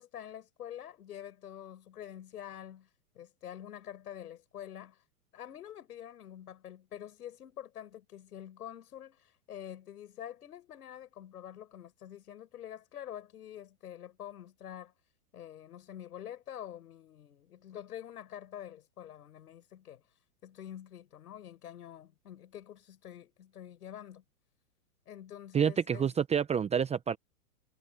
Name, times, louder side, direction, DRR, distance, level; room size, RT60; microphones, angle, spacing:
voice 1, 0.0-2.9 3.1-5.0 5.3-14.9 15.3-20.0 20.4-24.2 25.1-26.1, left 10 dB, 75° left, 6.3 m, -46 dB
voice 2, 25.5-27.2, right 7 dB, 15° right, 0.9 m, -28 dB
hypercardioid pair, 120°, 46 cm